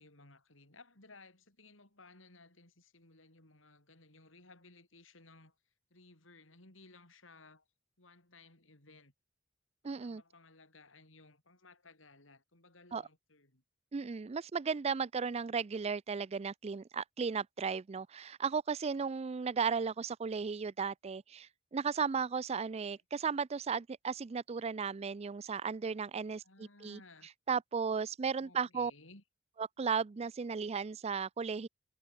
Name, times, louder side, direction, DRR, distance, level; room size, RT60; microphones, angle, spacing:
voice 1, 0.0-5.5 5.9-7.6 8.0-9.1 9.8-13.6 22.8-22.9 26.4-27.3 28.4-29.2, left 3 dB, 80° left, 6.4 m, -59 dB
voice 2, 9.8-10.2 12.9-13.0 13.9-27.0 27.5-28.9 29.6-31.7, right 5 dB, 30° right, 0.4 m, -35 dB
head